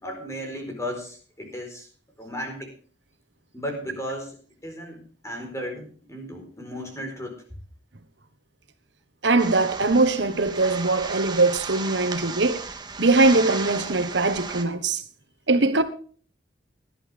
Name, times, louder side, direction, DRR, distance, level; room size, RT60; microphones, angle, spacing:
voice 1, 0.0-1.9 2.2-2.7 3.5-7.3, equal, 15° left, 4.4 m, -35 dB
voice 2, 9.2-12.6 13.0-15.0 15.5-15.8, right 3 dB, 80° right, 1.3 m, -21 dB
sound 1, 9.4-14.6, right 4 dB, 25° right, 1.6 m, -35 dB
18.0 x 11.5 x 3.5 m
head